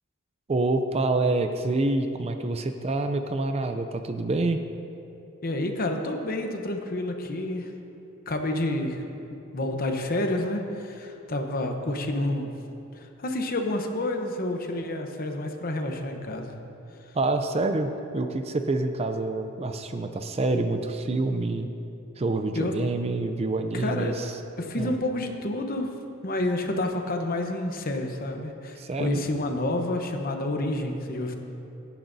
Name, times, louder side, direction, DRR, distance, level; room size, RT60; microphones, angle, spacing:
voice 1, 0.5-4.6 17.1-21.7 22.2-24.3 24.8-25.0 28.8-29.2, right 2 dB, 30° right, 7 dB, 0.4 m, -27 dB
voice 2, 5.4-7.7 8.3-9.0 9.5-12.5 12.9-16.5 22.5-22.7 23.7-24.1 24.6-25.9 26.2-31.4, left 1 dB, 45° left, 4 dB, 0.9 m, -29 dB
17.0 x 10.0 x 2.7 m, 2.9 s
head